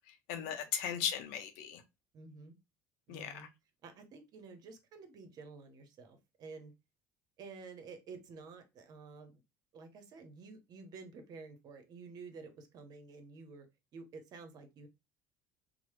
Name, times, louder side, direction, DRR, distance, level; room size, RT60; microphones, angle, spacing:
voice 1, 0.1-1.8 3.1-3.5, left 9 dB, 75° left, 0.6 m, -37 dB
voice 2, 2.1-2.5 3.1-3.5 3.8-6.7 7.4-9.4 9.7-13.7 13.9-14.9, right 4 dB, 55° right, 0.8 m, -51 dB
3.0 x 2.1 x 3.0 m
hypercardioid pair, 70°, 8 cm